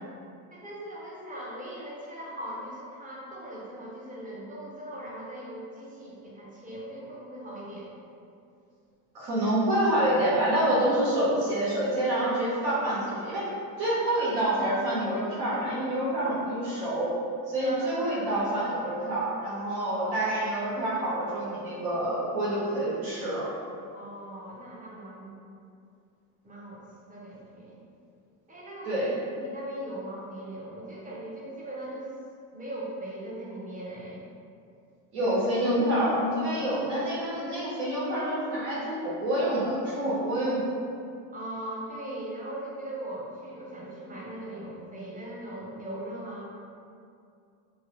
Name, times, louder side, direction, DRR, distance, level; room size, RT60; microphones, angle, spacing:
voice 1, 0.5-7.9 17.6-18.0 19.9-20.2 23.9-25.4 26.4-26.8 27.1-27.9 28.5-32.2 32.5-34.3 41.3-46.5, right 1 dB, 20° right, -5 dB, 0.6 m, -39 dB
voice 2, 9.1-13.5 13.8-17.1 17.5-23.5 28.8-29.1 35.1-40.7, right 1 dB, 80° right, -7 dB, 1.2 m, -27 dB
2.9 x 2.2 x 2.9 m, 2.5 s
supercardioid pair, 100°, 46 cm